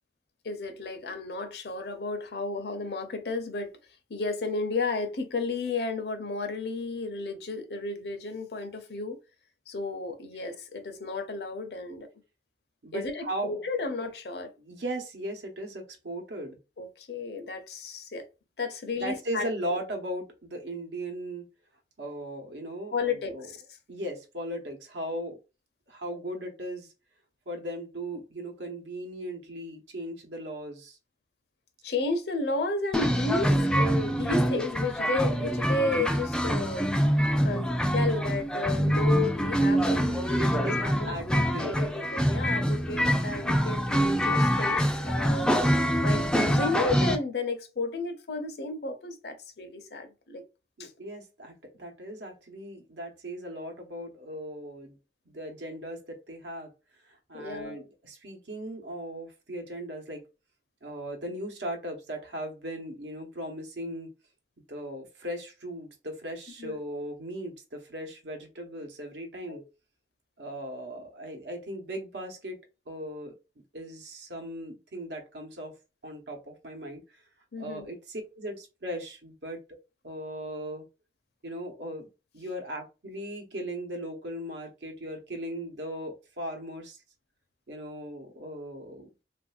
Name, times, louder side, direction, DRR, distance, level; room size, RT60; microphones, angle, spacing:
voice 1, 0.4-3.7 4.1-9.2 9.7-12.1 12.9-14.5 16.8-18.3 18.6-19.5 22.9-23.6 31.8-36.9 37.4-40.6 41.0-41.1 41.6-45.5 46.0-50.4 50.8-50.9 57.3-57.8 66.6-66.8 69.5-69.6 77.5-77.9, left 3 dB, 65° left, 0.6 m, -33 dB
voice 2, 12.8-13.6 14.6-16.6 19.0-21.5 22.0-23.5 23.9-25.4 25.9-26.9 27.5-31.0 40.3-42.0 45.4-45.7 50.8-55.0 55.2-56.7 57.0-60.2 60.8-64.1 64.7-69.6 70.4-72.6 72.9-73.4 73.7-75.7 76.0-77.2 77.6-79.6 80.0-80.9 81.4-87.0 87.7-89.1, right 1 dB, 80° right, 0.9 m, -38 dB
sound 1, 32.9-47.2, equal, 5° left, 0.3 m, -25 dB
3.1 x 2.5 x 2.3 m
head